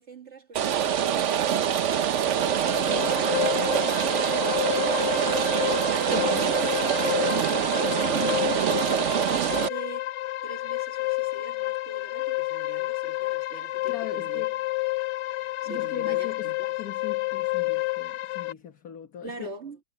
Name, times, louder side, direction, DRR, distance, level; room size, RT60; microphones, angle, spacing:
voice 1, 0.0-2.3 6.3-8.5 8.9-10.1 10.4-14.4 15.4-16.7 19.2-19.8, right 2 dB, 35° right, 1.8 m, -44 dB
Rain, 0.5-9.7, right 9 dB, 70° right, 0.7 m, -25 dB
sound 1, 2.2-18.5, left 19 dB, 70° left, 1.1 m, -30 dB
voice 2, 2.8-3.3 6.1-6.5 13.9-14.5 15.4-16.5 16.8-19.5, left 10 dB, 50° left, 1.6 m, -40 dB
omnidirectional pair, 2.2 m